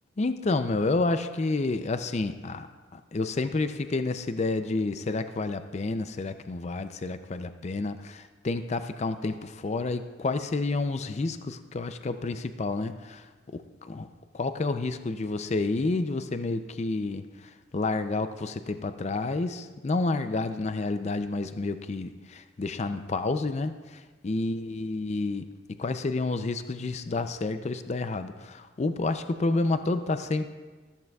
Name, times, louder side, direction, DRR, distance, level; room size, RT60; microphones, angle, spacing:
voice 1, 0.2-2.7 2.9-13.3 13.5-14.1 14.3-25.4 25.8-30.5, left 3 dB, 35° left, 10 dB, 0.4 m, -29 dB
14.0 x 13.5 x 2.3 m, 1.3 s
head